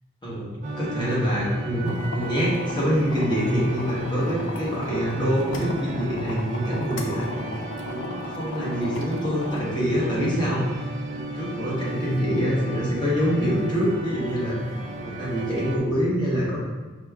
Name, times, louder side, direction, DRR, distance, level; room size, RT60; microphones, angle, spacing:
voice 1, 0.2-7.4 7.9-10.7 11.1-14.6 15.0-16.6, equal, 20° left, -6 dB, 0.9 m, -25 dB
sound 1, 0.6-15.8, right 1 dB, 35° right, 0.4 m, -36 dB
sound 2, 1.8-9.6, left 2 dB, 55° left, 0.4 m, -36 dB
5.0 x 3.5 x 2.3 m, 1.3 s
head